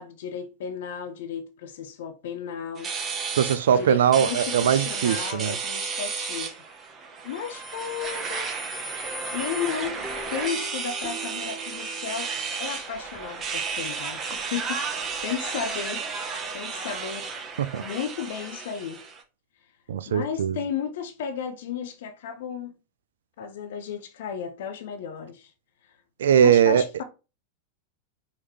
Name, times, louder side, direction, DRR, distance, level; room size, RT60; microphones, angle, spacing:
voice 1, 0.0-2.9 3.7-6.5 7.2-8.6 9.3-12.3 12.6-16.0 16.5-17.3 17.8-19.0 20.1-22.7 23.4-25.5 26.4-27.0, left 7 dB, 55° left, 0.5 m, -34 dB
sound 1, 2.8-19.2, right 5 dB, 25° right, 0.8 m, -33 dB
voice 2, 3.3-5.6 17.6-17.8 19.9-20.6 26.2-26.9, right 8 dB, 60° right, 0.3 m, -21 dB
sound 2, 8.0-12.7, right 1 dB, ahead, 1.3 m, -44 dB
4.7 x 2.8 x 3.2 m
figure-of-eight pair, 90°, 0 cm